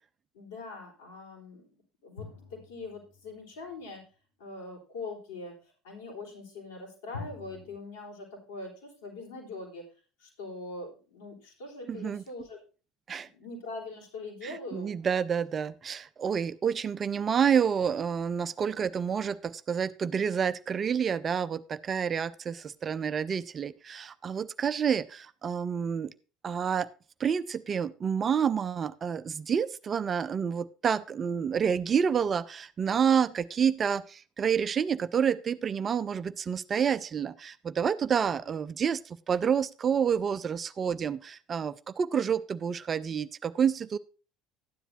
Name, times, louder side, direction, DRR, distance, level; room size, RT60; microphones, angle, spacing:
voice 1, 0.3-1.7 2.0-4.0 4.4-9.9 10.2-12.6 13.2-15.0, left 3 dB, 65° left, -2 dB, 3.7 m, -42 dB
sound 1, 2.2-3.8 7.1-7.7, left 4 dB, 85° left, 2.4 m, -45 dB
voice 2, 11.9-12.2 13.1-13.3 14.4-26.1 26.4-26.9 27.2-44.0, right 7 dB, 35° right, 15 dB, 0.4 m, -29 dB
12.5 x 10.0 x 2.7 m, 0.35 s
figure-of-eight pair, 60°, 0 cm